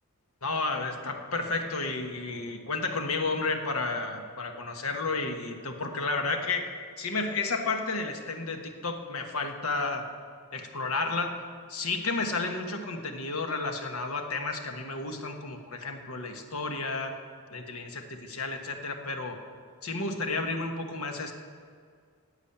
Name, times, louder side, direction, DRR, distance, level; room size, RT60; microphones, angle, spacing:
voice 1, 0.4-6.7 7.0-10.1 10.5-11.4 11.7-17.1 17.5-19.4 19.8-21.3, left 3 dB, 70° left, 5 dB, 1.3 m, -32 dB
11.5 x 8.3 x 8.6 m, 2.1 s
head